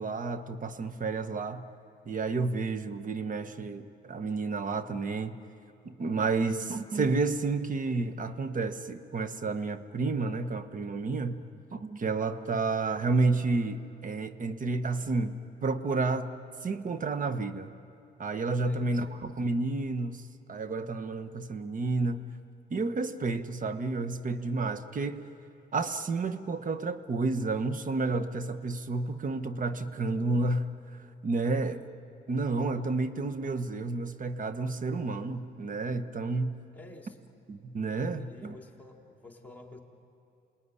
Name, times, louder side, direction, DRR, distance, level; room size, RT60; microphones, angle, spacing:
voice 1, 0.0-1.6 2.1-5.4 5.8-11.4 11.7-16.3 16.6-17.7 18.2-22.2 22.7-25.2 25.7-30.7 31.2-31.8 32.3-36.6 37.5-38.5, right 3 dB, 40° right, 10 dB, 1.3 m, -30 dB
voice 2, 18.6-19.3 36.7-37.2 38.1-39.8, left 2 dB, 10° left, 1 dB, 3.7 m, -51 dB
28.0 x 20.0 x 9.8 m, 2.6 s
cardioid pair, 90°, 20 cm